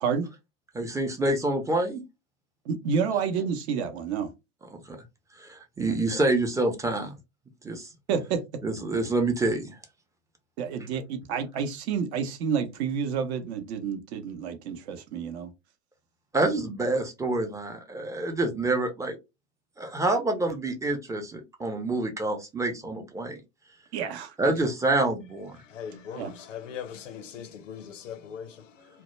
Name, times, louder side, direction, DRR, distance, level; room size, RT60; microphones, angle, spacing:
voice 1, 0.7-2.0 4.7-5.0 5.4-7.1 7.6-7.9 8.6-9.8 16.3-19.2 19.8-23.4 24.4-25.6, right 2 dB, 10° right, 0.4 m, -27 dB
voice 2, 2.7-4.3 8.1-8.4 10.6-15.5 23.9-24.5 26.2-26.3, right 6 dB, 60° right, 0.7 m, -29 dB
voice 3, 25.7-28.9, left 8 dB, 80° left, 0.7 m, -40 dB
2.1 x 2.0 x 3.0 m
hypercardioid pair, 85°, 37 cm